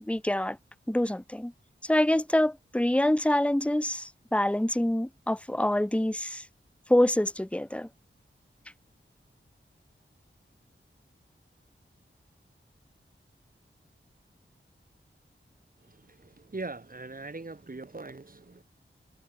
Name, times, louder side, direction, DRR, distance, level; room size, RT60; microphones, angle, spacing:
voice 1, 0.1-0.6 0.9-1.5 1.8-6.4 6.9-7.9, left 1 dB, 5° left, 1.3 m, -26 dB
voice 2, 16.5-18.6, right 3 dB, 45° right, 4.1 m, -40 dB
open air
wide cardioid pair, 85°, 21 cm